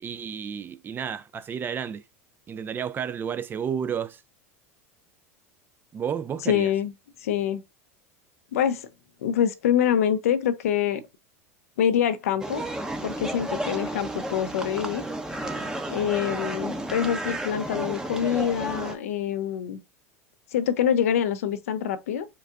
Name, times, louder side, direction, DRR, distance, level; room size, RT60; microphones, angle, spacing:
voice 1, 0.0-2.0 2.5-4.2 5.9-6.7 16.0-16.4, right 7 dB, 25° right, 0.3 m, -32 dB
voice 2, 6.5-6.9 7.2-7.6 8.5-8.9 9.2-11.0 11.8-12.6 13.0-15.1 15.9-19.8 20.5-22.3, left 9 dB, 75° left, 0.5 m, -25 dB
sound 1, 12.4-19.0, right 1 dB, 10° right, 0.7 m, -32 dB
4.6 x 2.3 x 2.4 m
hypercardioid pair, 90°, 8 cm